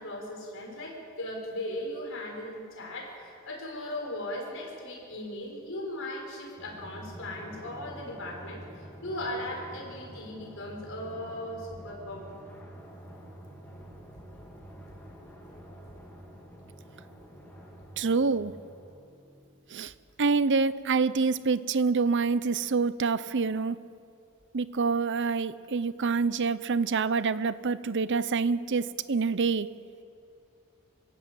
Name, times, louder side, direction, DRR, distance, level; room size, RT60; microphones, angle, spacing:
voice 1, 0.0-8.6 9.0-12.3, left 1 dB, 60° left, 0 dB, 5.9 m, -38 dB
Drum, 6.6-19.7, equal, 10° left, 3.4 m, -48 dB
voice 2, 18.0-18.5 19.7-19.9 20.2-23.8 24.5-29.7, right 4 dB, 55° right, 16 dB, 0.7 m, -26 dB
27.0 x 16.5 x 8.3 m, 2.5 s
head